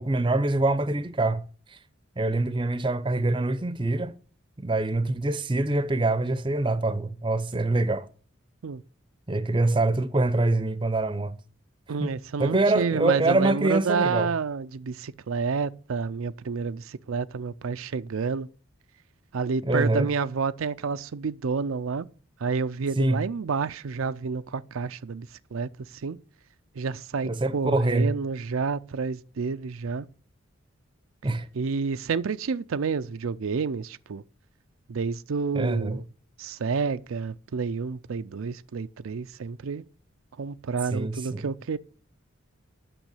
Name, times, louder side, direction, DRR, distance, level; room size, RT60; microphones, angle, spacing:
voice 1, 0.0-1.4 2.2-4.1 4.6-8.1 9.3-11.4 12.0-12.1 12.4-14.3 19.6-20.1 23.0-23.2 27.2-28.1 31.2-31.5 35.5-36.0 40.9-41.4, right 2 dB, 25° right, 0.6 m, -25 dB
voice 2, 11.9-18.5 19.3-22.1 22.4-26.2 26.8-30.1 31.5-34.2 34.9-36.0 36.4-39.8 40.4-41.8, right 5 dB, 85° right, 0.5 m, -29 dB
9.1 x 6.3 x 8.1 m
head